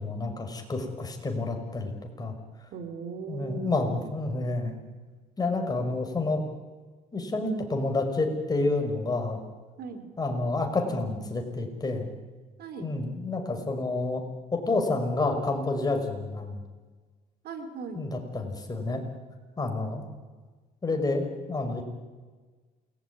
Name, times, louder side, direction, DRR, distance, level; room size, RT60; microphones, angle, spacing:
voice 1, 0.0-2.3 3.3-4.8 5.4-6.4 7.1-9.4 10.2-12.1 12.8-14.2 14.5-16.6 18.0-19.0 19.6-20.1 20.8-21.8, left 2 dB, 20° left, 4 dB, 5.7 m, -29 dB
voice 2, 2.7-4.1 9.8-10.1 12.6-12.9 17.4-18.1, right 5 dB, 65° right, 9 dB, 3.8 m, -38 dB
28.0 x 21.0 x 9.8 m, 1.4 s
cardioid pair, 110°, 17 cm